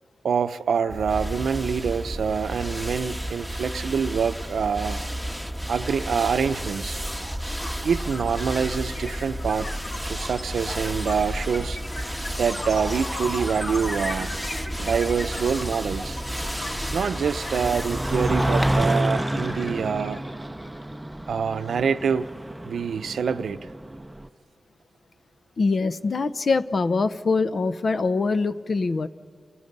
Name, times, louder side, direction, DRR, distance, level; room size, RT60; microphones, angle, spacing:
voice 1, 0.2-5.0 5.7-7.0 7.8-9.7 10.0-11.8 12.3-14.3 14.8-16.2 16.9-20.2 21.3-22.3 22.6-23.6, right 6 dB, 85° right, 11 dB, 0.7 m, -26 dB
sound 1, 0.9-18.8, equal, 5° left, 1.4 m, -32 dB
sound 2, 6.1-6.2 6.4-20.8, left 2 dB, 70° left, 4.4 m, -38 dB
sound 3, 13.8-24.3, right 1 dB, 10° right, 0.6 m, -30 dB
voice 2, 25.6-29.1, left 4 dB, 50° left, 12 dB, 0.7 m, -23 dB
30.0 x 28.5 x 5.4 m, 2.1 s
wide cardioid pair, 100°, 0 cm